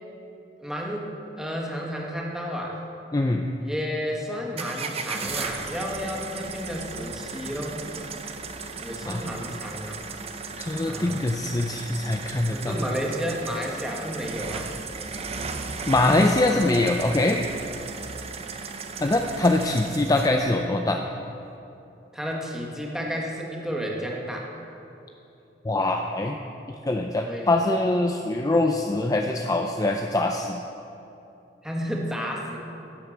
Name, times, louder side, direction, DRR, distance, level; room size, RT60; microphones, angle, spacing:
voice 1, 0.6-1.1 1.4-2.8 3.6-7.9 8.8-10.0 10.9-11.2 12.5-14.7 22.1-24.5 27.2-27.5 28.6-28.8 31.6-32.6, equal, 5° right, -1 dB, 1.6 m, -32 dB
voice 2, 3.1-3.4 9.1-9.2 10.6-12.7 15.9-17.4 19.0-21.0 25.6-26.4 26.8-30.6, left 2 dB, 20° left, 3 dB, 0.5 m, -23 dB
Diesel engine starting revving and stopping, 4.6-20.5, right 4 dB, 35° right, 0.7 m, -36 dB
11.0 x 8.0 x 7.3 m, 2.8 s
head